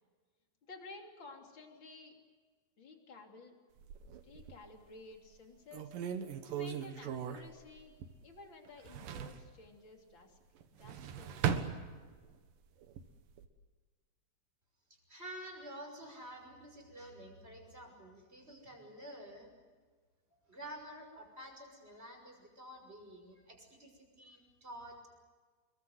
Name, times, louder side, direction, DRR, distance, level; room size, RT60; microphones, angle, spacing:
voice 1, 0.7-2.2 2.8-3.5 4.2-5.9 6.5-7.9 8.2-10.4 10.8-11.4, left 3 dB, 30° left, 3 dB, 3.0 m, -53 dB
sound 1, 3.8-4.7 5.3-5.4 5.7-8.4 8.6-9.5 10.6-12.4 12.8-13.5, right 8 dB, 65° right, 2.4 m, -39 dB
voice 2, 15.1-19.5 20.5-25.0, right 1 dB, 10° right, 2 dB, 5.7 m, -50 dB
28.5 x 22.5 x 8.0 m, 1.5 s
omnidirectional pair, 5.5 m